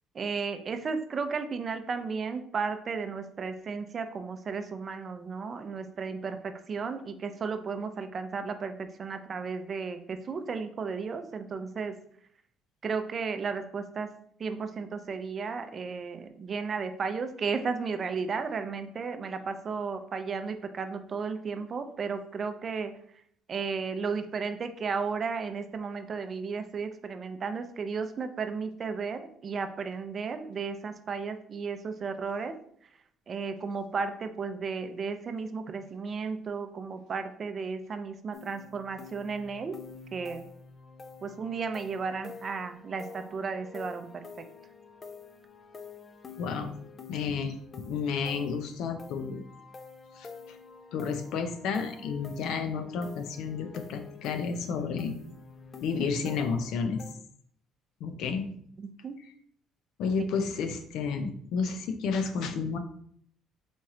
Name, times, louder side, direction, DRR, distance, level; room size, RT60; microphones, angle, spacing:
voice 1, 0.1-12.0 12.8-14.1 14.4-23.0 23.5-32.6 33.3-39.8 40.1-40.5 41.2-44.5 58.8-59.2, right 5 dB, 40° right, 8 dB, 0.5 m, -34 dB
sound 1, 38.3-57.1, left 4 dB, 30° left, 0.5 m, -48 dB
voice 2, 46.4-46.7 47.1-47.6 47.8-49.4 50.2-50.6 50.9-55.1 55.8-57.0 58.0-58.5 60.0-62.8, left 5 dB, 75° left, 7 dB, 0.6 m, -31 dB
4.3 x 3.1 x 3.7 m, 0.64 s
cardioid pair, 100°, 0 cm